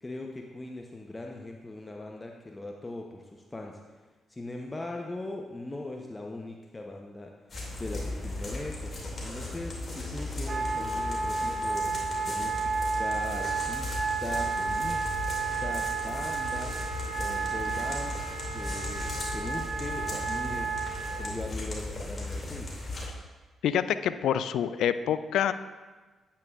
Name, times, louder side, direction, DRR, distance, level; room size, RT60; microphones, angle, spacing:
voice 1, 0.0-4.0 4.3-7.3 7.7-8.9 9.2-12.7 13.0-15.1 15.6-18.2 18.5-20.8 21.2-22.7, left 2 dB, 25° left, 1 dB, 0.8 m, -40 dB
sound 1, 7.5-23.1, left 2 dB, 45° left, 2.5 m, -37 dB
Wind instrument woodwind instrument, 10.5-21.3, right 4 dB, 40° right, 0.8 m, -32 dB
voice 2, 23.6-25.5, left 9 dB, 70° left, 13 dB, 0.3 m, -26 dB
8.8 x 8.5 x 2.4 m, 1.3 s
hypercardioid pair, 40°, 0 cm